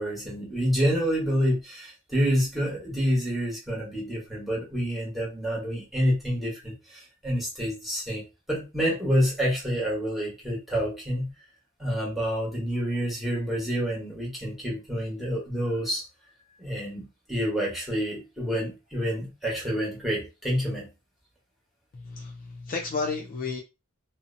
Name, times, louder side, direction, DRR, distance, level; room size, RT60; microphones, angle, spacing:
voice 1, 0.0-11.3 11.8-16.0 16.6-20.9, equal, ahead, 1.0 m, -28 dB
voice 2, 21.9-23.6, left 4 dB, 40° left, 0.4 m, -32 dB
2.6 x 2.0 x 2.5 m
head